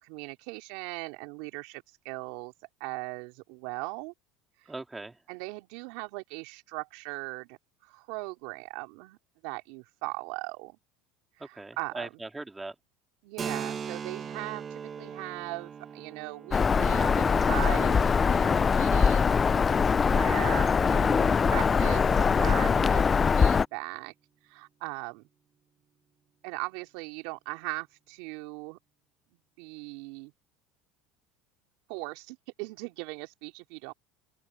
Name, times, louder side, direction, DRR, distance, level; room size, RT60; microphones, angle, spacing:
voice 1, 0.0-2.5 2.8-4.1 4.6-4.7 5.3-9.2 9.4-10.8 11.4-12.1 13.2-19.4 19.7-23.0 23.4-24.1 24.4-25.2 26.4-28.8 29.6-30.3 31.9-33.9, right 27 dB, 70° right, 3.5 m, -39 dB
voice 2, 4.7-5.2 11.5-12.7, right 2 dB, 15° right, 3.3 m, -40 dB
Keyboard (musical), 13.4-20.7, right 7 dB, 35° right, 1.7 m, -41 dB
Bird vocalization bird call bird song, 16.5-23.6, left 5 dB, 25° left, 0.5 m, -23 dB
open air
supercardioid pair, 90°, 0 cm